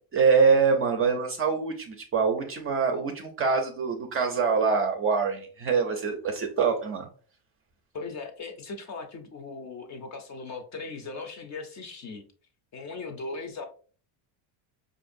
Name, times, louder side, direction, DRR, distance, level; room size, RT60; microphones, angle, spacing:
voice 1, 0.1-7.1, right 5 dB, 30° right, 4 dB, 0.4 m, -24 dB
voice 2, 7.9-12.2 12.7-13.7, left 3 dB, 35° left, 5 dB, 0.5 m, -38 dB
4.5 x 2.6 x 2.5 m, 0.42 s
cardioid pair, 135°, 49 cm